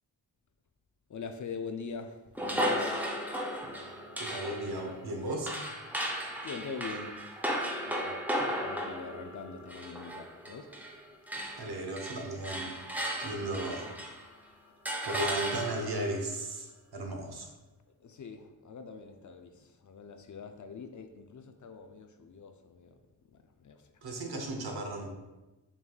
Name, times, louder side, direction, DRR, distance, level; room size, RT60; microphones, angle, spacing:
voice 1, 1.1-3.1 6.4-7.1 7.9-8.2 8.6-10.7 18.0-22.9 23.6-23.8, left 5 dB, 45° left, 7 dB, 0.4 m, -43 dB
sound 1, 2.4-11.0 11.3-14.3 14.9-16.1, equal, 5° right, 0.6 m, -35 dB
voice 2, 4.2-5.5 8.4-8.5 11.6-12.8 13.2-13.9 15.0-17.5 24.0-25.2, right 1 dB, 60° right, 2 dB, 0.9 m, -35 dB
5.3 x 3.0 x 2.3 m, 1.1 s
cardioid pair, 45°, 43 cm